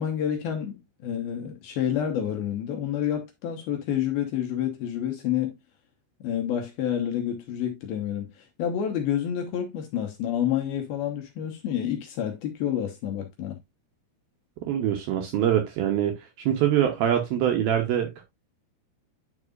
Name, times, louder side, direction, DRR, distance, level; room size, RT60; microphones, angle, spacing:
voice 1, 0.0-5.5 6.2-8.3 8.6-13.6, left 10 dB, 70° left, 2.5 m, -29 dB
voice 2, 14.6-18.2, right 10 dB, 75° right, 2.3 m, -24 dB
9.7 x 5.4 x 2.4 m
omnidirectional pair, 5.2 m